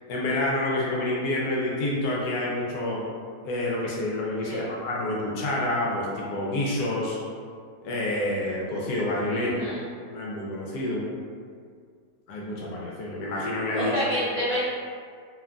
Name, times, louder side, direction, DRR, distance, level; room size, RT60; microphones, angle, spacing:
voice 1, 0.1-3.0 3.4-7.2 7.8-9.7 10.1-11.1 12.3-14.0, left 1 dB, 75° left, -4 dB, 1.1 m, -28 dB
voice 2, 9.3-9.8 13.7-14.6, equal, 65° right, -14 dB, 0.3 m, -28 dB
2.9 x 2.3 x 2.3 m, 2.1 s
omnidirectional pair, 1.8 m